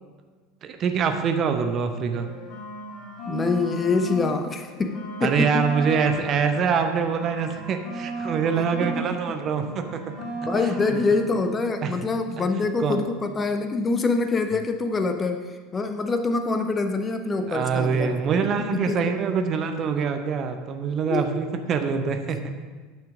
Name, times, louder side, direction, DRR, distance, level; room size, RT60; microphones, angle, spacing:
voice 1, 0.6-2.3 5.2-10.0 10.9-11.0 11.8-11.9 12.4-13.0 17.5-22.5, right 6 dB, 40° right, 7 dB, 0.7 m, -25 dB
sound 1, 2.1-4.4 4.7-9.0 9.3-11.3, right 2 dB, 40° left, 1.9 m, -35 dB
voice 2, 3.3-5.6 9.0-9.1 10.3-18.2 18.6-19.0 21.1-21.4, left 3 dB, 25° left, 7 dB, 0.6 m, -25 dB
8.8 x 6.0 x 5.0 m, 1.4 s
figure-of-eight pair, 75°, 0 cm